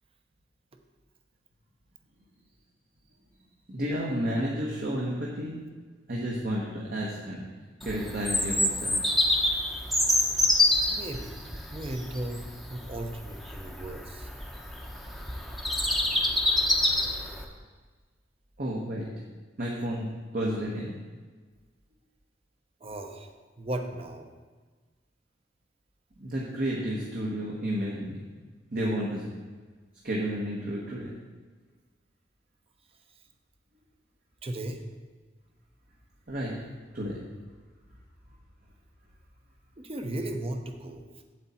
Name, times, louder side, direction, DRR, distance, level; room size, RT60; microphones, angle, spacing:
voice 1, 3.7-5.7 6.1-7.4 7.8-8.9 18.6-19.1 19.6-20.9 26.2-28.2 28.7-29.3 30.0-31.1 36.3-36.5 36.9-37.2, equal, 50° right, -3 dB, 1.3 m, -31 dB
Bird vocalization bird call bird song, 7.8-17.4, left 1 dB, ahead, 0.8 m, -27 dB
voice 2, 10.9-11.4 11.7-14.3 22.8-24.3 34.4-34.8 39.8-41.0, right 1 dB, 35° right, 5 dB, 0.8 m, -36 dB
8.1 x 7.9 x 4.3 m, 1.4 s
head